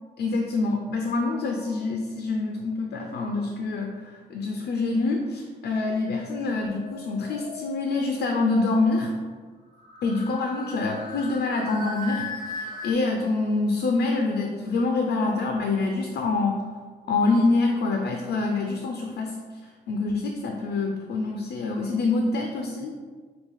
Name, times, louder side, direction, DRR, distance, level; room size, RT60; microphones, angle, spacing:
voice 1, 0.2-9.1 10.0-12.3 12.5-16.6 17.1-19.4 19.9-22.9, left 3 dB, 70° left, 2 dB, 0.4 m, -26 dB
sound 1, 1.1-1.8 6.1-8.1 9.7-12.9, left 3 dB, 20° left, 0.6 m, -39 dB
3.6 x 2.3 x 3.5 m, 1.5 s
supercardioid pair, 60°, 18 cm